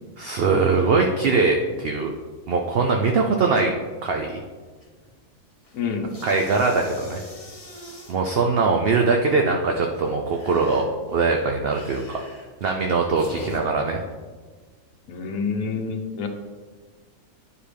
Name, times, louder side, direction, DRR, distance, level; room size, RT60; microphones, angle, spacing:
voice 1, 0.2-2.1 2.5-3.7 4.0-4.4 6.2-7.2 8.1-12.2 12.6-14.0, right 4 dB, 60° right, 2 dB, 0.6 m, -22 dB
sound 1, 4.8-5.2 5.5-8.2 9.8-13.6, left 2 dB, 25° left, 1.3 m, -43 dB
voice 2, 5.7-6.1 15.1-16.3, left 5 dB, 70° left, 4 dB, 1.2 m, -27 dB
9.9 x 4.8 x 3.4 m, 1.4 s
omnidirectional pair, 1.5 m